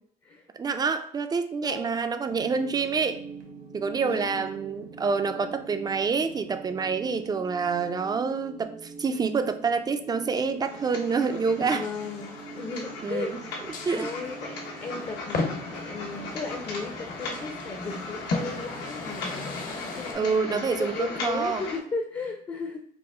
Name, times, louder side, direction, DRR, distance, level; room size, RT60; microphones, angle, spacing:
voice 1, 0.6-3.2 3.7-11.9 13.0-13.4 13.8-14.1 20.1-21.6, right 5 dB, 25° right, 9 dB, 0.4 m, -27 dB
voice 2, 1.6-2.0 4.0-4.5 11.7-13.6 13.9-19.6 20.0-22.8, left 4 dB, 25° left, 3 dB, 0.6 m, -36 dB
sound 1, 2.3-20.0, right 5 dB, 70° right, 1.1 m, -45 dB
sound 2, 10.6-21.8, left 3 dB, 80° left, 1.0 m, -38 dB
sound 3, 10.6-20.1, left 3 dB, 55° left, 0.9 m, -37 dB
4.8 x 2.0 x 3.5 m, 0.65 s
cardioid pair, 110°, 17 cm